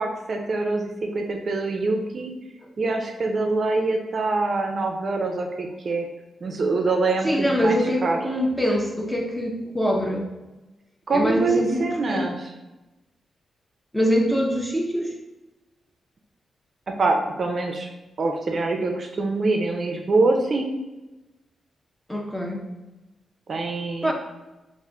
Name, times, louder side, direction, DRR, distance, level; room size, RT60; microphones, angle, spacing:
voice 1, 0.0-2.3 2.8-6.1 6.4-8.2 11.1-12.5 16.9-17.9 18.2-20.7 23.5-24.1, right 3 dB, 50° right, 3 dB, 0.5 m, -24 dB
voice 2, 7.2-10.3 11.1-12.3 13.9-15.1 22.1-22.6 24.0-24.1, equal, 5° left, 1 dB, 0.5 m, -24 dB
3.4 x 2.5 x 3.7 m, 1.1 s
cardioid pair, 100°, 0 cm